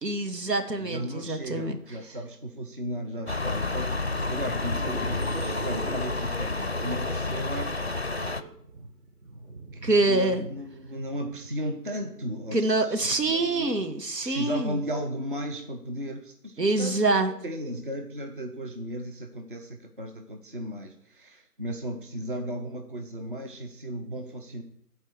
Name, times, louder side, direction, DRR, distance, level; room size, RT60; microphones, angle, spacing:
voice 1, 0.0-1.8 9.8-10.5 12.5-14.8 16.6-17.3, right 2 dB, 80° right, 6 dB, 1.8 m, -25 dB
voice 2, 0.8-8.3 10.0-13.0 13.3-13.9 14.2-17.0 17.3-24.6, equal, 35° right, 4 dB, 0.7 m, -35 dB
sound 1, 3.3-8.4, left 3 dB, 45° left, 0.5 m, -30 dB
sound 2, 4.2-12.8, right 4 dB, 55° right, 1.9 m, -43 dB
9.6 x 4.6 x 7.8 m, 0.65 s
figure-of-eight pair, 165°, 48 cm